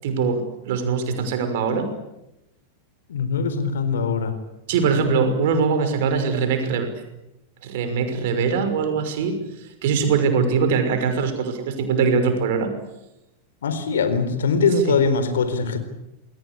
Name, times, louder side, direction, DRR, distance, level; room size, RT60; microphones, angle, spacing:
voice 1, 0.0-1.9 4.7-6.9 7.6-9.4 9.8-12.7 14.8-15.0, right 5 dB, 50° right, 8 dB, 6.0 m, -22 dB
voice 2, 3.1-4.3 13.6-15.8, left 4 dB, 65° left, 10 dB, 4.2 m, -22 dB
28.5 x 22.0 x 8.6 m, 0.91 s
figure-of-eight pair, 90°, 0 cm